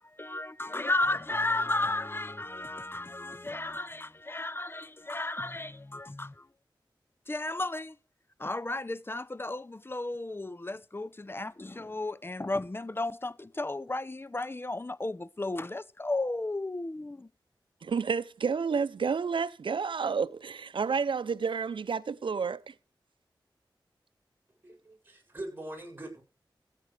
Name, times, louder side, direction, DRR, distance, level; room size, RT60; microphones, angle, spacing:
voice 1, 0.0-6.5 7.3-7.9 8.4-17.3, left 2 dB, 25° left, 0.7 m, -34 dB
voice 2, 17.8-22.7, right 5 dB, 75° right, 0.7 m, -30 dB
voice 3, 24.6-26.2, right 1 dB, 25° right, 7.8 m, -42 dB
15.5 x 8.4 x 5.0 m
cardioid pair, 45°, 8 cm